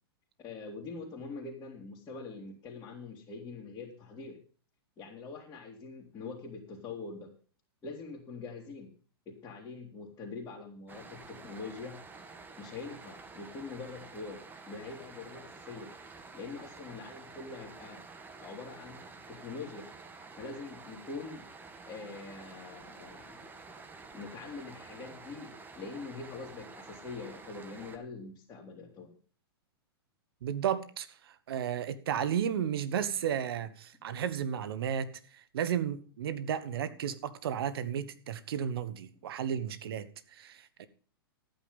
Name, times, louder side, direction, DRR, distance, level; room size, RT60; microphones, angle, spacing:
voice 1, 0.4-4.4 5.0-7.3 7.8-8.9 9.3-12.0 12.6-15.9 16.3-18.0 18.4-19.9 20.4-21.4 21.9-23.4 24.1-29.1, left 4 dB, 25° left, 3.0 m, -44 dB
sound 1, 10.9-28.0, right 4 dB, 15° right, 1.5 m, -50 dB
voice 2, 30.4-40.9, right 9 dB, 70° right, 1.4 m, -33 dB
13.5 x 9.4 x 5.4 m
hypercardioid pair, 125°, 13 cm